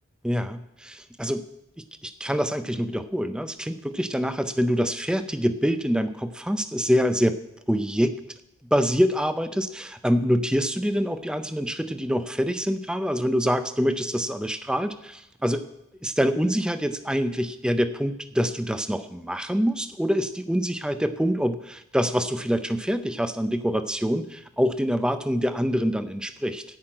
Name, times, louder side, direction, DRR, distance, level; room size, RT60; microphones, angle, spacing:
voice 1, 0.2-1.4 1.8-7.4 7.7-8.2 8.7-15.7 16.0-26.6, equal, 5° right, 11 dB, 0.5 m, -25 dB
14.5 x 5.8 x 8.7 m, 0.84 s
head